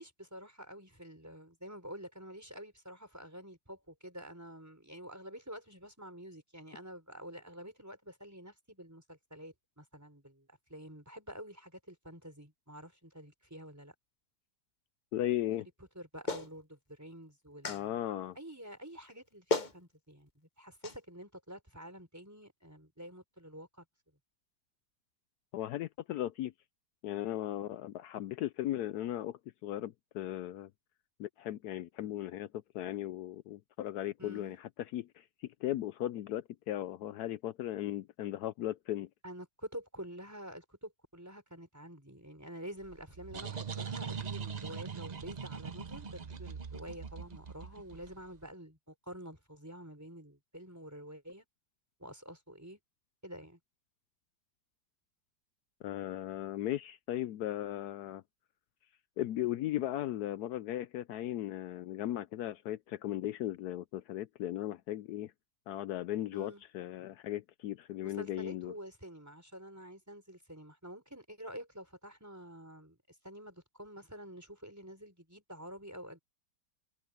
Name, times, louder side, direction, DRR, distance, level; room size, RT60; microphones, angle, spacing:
voice 1, 0.0-13.9 15.9-17.9 18.3-23.8 34.2-34.6 39.2-51.4 52.0-52.8 53.2-53.6 66.3-66.6 68.0-73.0 73.2-76.2, equal, 10° right, 4.8 m, -48 dB
voice 2, 15.1-15.7 17.7-18.4 25.5-26.5 27.0-30.7 31.2-39.1 55.8-58.2 59.2-65.3 65.7-68.7, left 13 dB, 70° left, 1.0 m, -37 dB
Clapping, 16.3-16.5 17.6-17.8 19.1-19.2 19.5-19.7 20.8-21.0, left 2 dB, 30° left, 1.1 m, -32 dB
sound 1, 42.8-48.4, right 6 dB, 40° right, 0.5 m, -42 dB
omnidirectional pair, 1.9 m